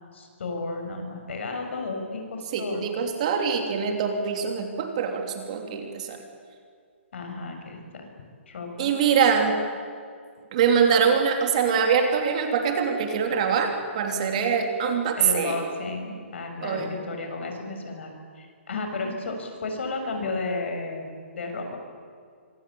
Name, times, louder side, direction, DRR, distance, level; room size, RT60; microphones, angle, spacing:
voice 1, 0.1-2.9 7.1-8.1 8.5-8.9 15.2-18.1 18.3-21.1 21.3-21.8, left 3 dB, 60° left, 4 dB, 6.8 m, -33 dB
voice 2, 2.5-6.2 8.8-9.6 10.5-15.6 16.6-16.9, right 6 dB, 30° right, 4 dB, 3.0 m, -24 dB
26.0 x 24.0 x 8.7 m, 2.1 s
hypercardioid pair, 175°, 7 cm